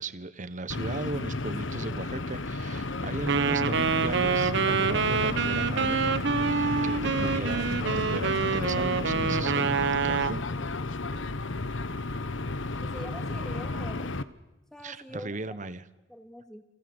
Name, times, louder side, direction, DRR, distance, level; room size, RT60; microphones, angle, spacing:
voice 1, 0.0-6.0 6.4-10.8 14.8-15.9, right 2 dB, 40° right, 14 dB, 1.3 m, -37 dB
sound 1, 0.7-14.2, left 2 dB, 70° left, 1.2 m, -32 dB
Wind instrument woodwind instrument, 3.3-10.4, right 5 dB, 60° right, 1.1 m, -27 dB
voice 2, 12.8-14.1 14.7-15.3 16.1-16.6, equal, 5° left, 5 dB, 2.9 m, -43 dB
30.0 x 23.5 x 8.0 m, 0.99 s
head